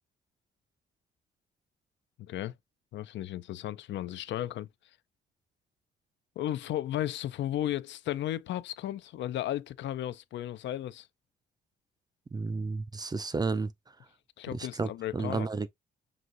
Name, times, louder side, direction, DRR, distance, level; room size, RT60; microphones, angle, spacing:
voice 1, 2.2-2.5 2.9-4.7 6.4-11.1 14.4-15.5, left 12 dB, 70° left, 0.4 m, -34 dB
voice 2, 12.3-13.7 14.5-15.7, right 4 dB, 20° right, 0.4 m, -32 dB
6.1 x 2.7 x 2.5 m
cardioid pair, 90°, 20 cm